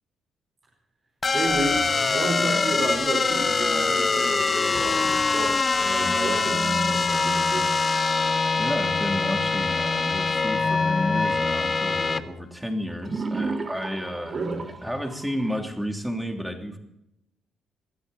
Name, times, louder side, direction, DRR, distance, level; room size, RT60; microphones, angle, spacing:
sound 1, 1.2-12.2, left 4 dB, 30° left, 0.8 m, -23 dB
voice 1, 1.3-7.7 14.3-14.6, right 2 dB, 50° right, -2 dB, 4.5 m, -30 dB
Bell, 4.7-11.6, left 9 dB, 65° left, 6.4 m, -40 dB
voice 2, 8.5-14.4 14.8-16.8, equal, ahead, 3 dB, 2.9 m, -31 dB
sound 2, 12.9-15.6, right 3 dB, 35° right, 1.7 m, -33 dB
21.5 x 13.5 x 4.1 m, 0.83 s
cardioid pair, 90°, 0 cm